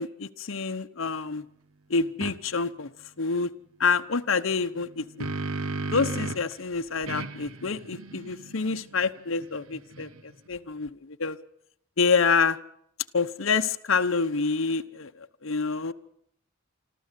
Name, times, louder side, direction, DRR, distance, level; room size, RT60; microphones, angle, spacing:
voice 1, 0.0-1.4 1.9-2.9 3.2-3.5 3.8-5.3 5.9-11.4 12.0-12.6 13.1-15.9, left 5 dB, 65° left, 8 dB, 0.9 m, -27 dB
sound 1, 2.2-2.4 4.8-6.5 7.1-10.4, right 3 dB, 85° right, 1.2 m, -35 dB
25.0 x 14.0 x 8.3 m, 0.71 s
head